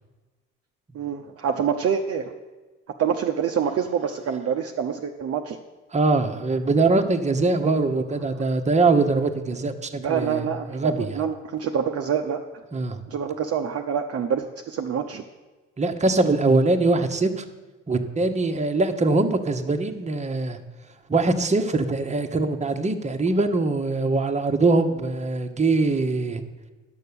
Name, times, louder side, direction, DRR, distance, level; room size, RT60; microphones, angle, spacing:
voice 1, 0.9-2.2 3.0-5.6 10.0-12.4 13.1-15.2, right 7 dB, 40° right, 3 dB, 0.7 m, -26 dB
voice 2, 5.9-11.2 12.7-13.0 15.8-17.4 17.9-20.6 21.1-26.4, right 3 dB, 20° right, 5 dB, 1.0 m, -22 dB
10.0 x 6.7 x 6.8 m, 1.2 s
hypercardioid pair, 55°, 38 cm